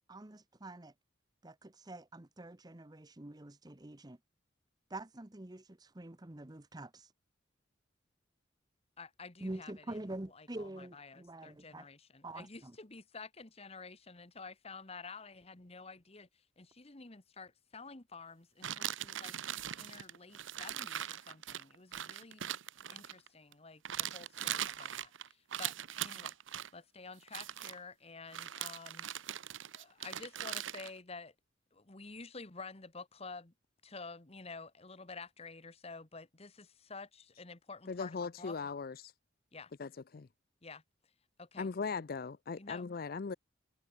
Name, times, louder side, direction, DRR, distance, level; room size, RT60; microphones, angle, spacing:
voice 1, 0.1-0.9 1.4-4.2 4.9-7.1 9.4-11.9 12.2-12.7, right 1 dB, 20° right, 0.9 m, -46 dB
voice 2, 9.0-16.3 16.6-19.3 19.8-22.4 22.9-25.7 26.0-26.3 26.7-29.1 29.7-31.3 31.7-33.5 33.8-38.6 39.5-39.7 40.6-40.8 41.4-41.7 42.6-42.8, left 4 dB, 30° left, 1.4 m, -50 dB
sound 1, 18.6-23.5 23.8-26.7 27.2-27.8 28.3-30.9, right 11 dB, 80° right, 0.8 m, -40 dB
voice 3, 37.9-39.1 39.8-40.3 41.6-43.3, left 5 dB, 50° left, 0.5 m, -39 dB
head